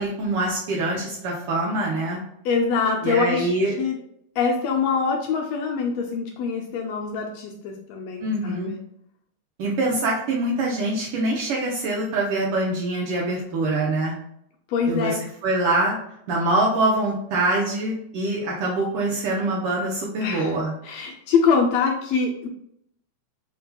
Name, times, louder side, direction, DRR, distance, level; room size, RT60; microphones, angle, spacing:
voice 1, 0.0-2.2 3.0-3.7 8.2-8.7 9.6-14.1 14.9-15.2 15.4-15.9 16.3-20.7, right 2 dB, 80° right, -3 dB, 1.3 m, -24 dB
voice 2, 2.4-4.0 4.4-8.8 14.7-15.2 20.2-20.5 20.8-22.5, left 5 dB, 80° left, 1 dB, 1.5 m, -24 dB
5.7 x 2.7 x 2.2 m, 0.72 s
omnidirectional pair, 3.4 m